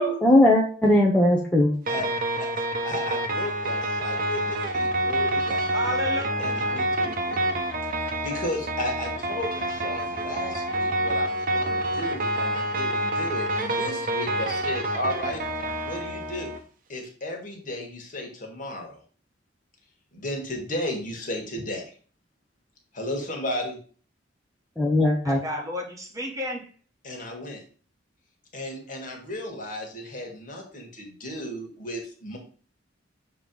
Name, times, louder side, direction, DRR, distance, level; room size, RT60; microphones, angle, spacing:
voice 1, 0.2-1.7 24.8-25.5, left 1 dB, 5° left, -4 dB, 0.7 m, -19 dB
sound 1, 1.9-16.6, right 1 dB, 50° right, 0.8 m, -27 dB
voice 2, 2.4-5.8 6.4-7.4 8.0-15.4 15.8-16.5 16.9-19.0 20.1-21.8 22.9-23.8 27.0-27.6 28.5-32.4, left 1 dB, 45° left, 1 dB, 1.6 m, -34 dB
voice 3, 5.7-6.4 25.2-26.7, equal, 20° right, 0 dB, 1.1 m, -31 dB
6.8 x 3.0 x 5.2 m, 0.43 s
head